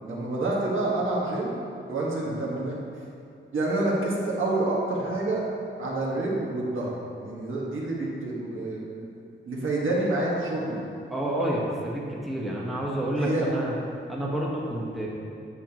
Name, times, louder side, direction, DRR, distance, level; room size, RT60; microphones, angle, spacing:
voice 1, 0.0-1.5 1.9-2.8 3.5-5.4 5.8-6.9 7.2-9.1 9.5-10.8 13.2-13.5, right 2 dB, 75° right, -4 dB, 1.5 m, -28 dB
voice 2, 11.1-13.7 14.1-15.1, right 1 dB, ahead, -5 dB, 1.0 m, -29 dB
8.8 x 6.8 x 2.9 m, 2.6 s
wide cardioid pair, 170°, 21 cm